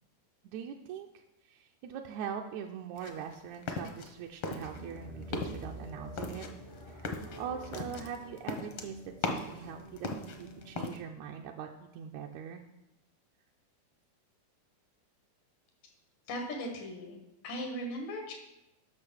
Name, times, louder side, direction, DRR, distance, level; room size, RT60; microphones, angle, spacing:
voice 1, 0.4-6.5 6.9-12.6, right 8 dB, 80° right, 2 dB, 1.7 m, -42 dB
sound 1, 3.0-4.1 4.4-5.0 5.2-5.7 6.2-9.6 10.0-11.0, left 3 dB, 70° left, 1.3 m, -37 dB
sound 2, 4.6-10.9, equal, 50° left, 0.6 m, -48 dB
voice 2, 16.3-17.2 17.4-18.4, equal, 90° left, 3 dB, 3.3 m, -38 dB
8.7 x 6.2 x 6.3 m, 0.93 s
omnidirectional pair, 3.7 m